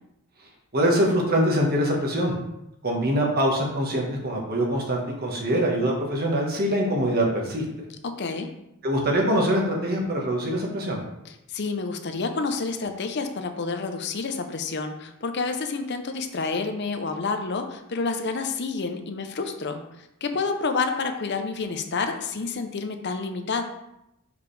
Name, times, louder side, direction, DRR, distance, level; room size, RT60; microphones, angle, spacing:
voice 1, 0.7-2.3 2.8-7.9 8.8-11.0, equal, 45° right, -1 dB, 1.4 m, -24 dB
voice 2, 8.0-8.5 11.5-23.6, left 4 dB, 50° left, 6 dB, 0.6 m, -29 dB
6.5 x 5.1 x 3.3 m, 0.86 s
head